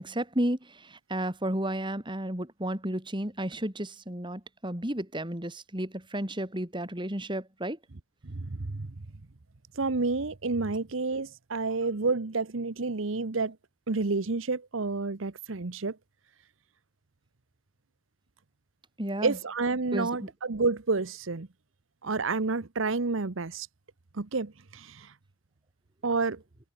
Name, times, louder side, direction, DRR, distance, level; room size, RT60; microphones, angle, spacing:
voice 1, 0.0-7.8 19.0-19.3 19.9-20.1, right 1 dB, 25° right, 3.5 m, -32 dB
voice 2, 8.2-8.9 9.7-13.6 13.9-16.0 19.2-21.5 22.0-23.7 24.1-25.1 26.0-26.4, right 3 dB, 75° right, 1.0 m, -29 dB
head